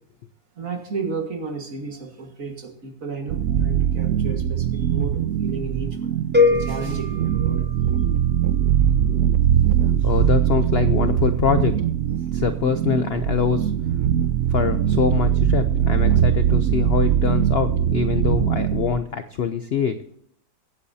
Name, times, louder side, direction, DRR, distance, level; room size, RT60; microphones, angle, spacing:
voice 1, 0.6-7.7 10.0-10.1, right 4 dB, 50° right, 4 dB, 2.0 m, -33 dB
sound 1, 3.3-19.0, right 10 dB, 65° right, 0.7 m, -21 dB
sound 2, 6.3-8.4, left 4 dB, 10° right, 0.5 m, -23 dB
voice 2, 10.0-11.7 12.3-13.7 14.5-20.0, left 7 dB, 70° left, 10 dB, 0.6 m, -24 dB
22.0 x 8.4 x 2.7 m, 0.69 s
omnidirectional pair, 1.8 m